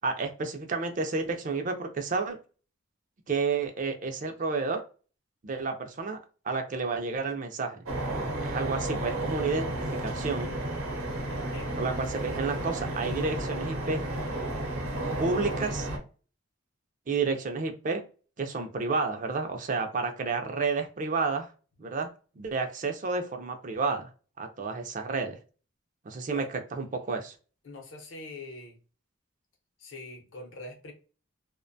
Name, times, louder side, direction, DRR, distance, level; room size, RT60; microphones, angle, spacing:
voice 1, 0.0-2.4 3.3-4.8 5.4-6.2 6.4-7.8 8.4-9.7 10.0-10.5 11.8-14.1 15.2-15.9 17.1-18.0 18.4-21.5 21.8-22.1 22.4-24.1 24.4-25.4 26.1-27.3, right 4 dB, 40° right, 0.3 m, -30 dB
sound 1, 7.9-16.0, right 1 dB, 90° right, 0.7 m, -32 dB
voice 2, 11.3-11.8 26.3-26.5 27.6-28.8 29.8-30.9, left 2 dB, 65° left, 0.7 m, -43 dB
2.4 x 2.1 x 2.5 m
head